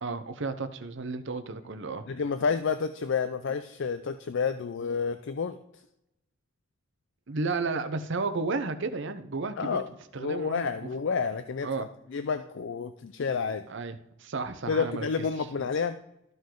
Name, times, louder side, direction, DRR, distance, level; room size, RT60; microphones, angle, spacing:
voice 1, 0.0-2.0 7.3-9.8 10.1-10.9 11.6-11.9 13.7-15.2, right 3 dB, 65° right, 9 dB, 0.8 m, -33 dB
voice 2, 2.1-5.6 9.6-9.8 10.2-13.6 14.7-16.0, left 5 dB, 65° left, 11 dB, 0.4 m, -30 dB
13.5 x 5.3 x 3.8 m, 0.83 s
head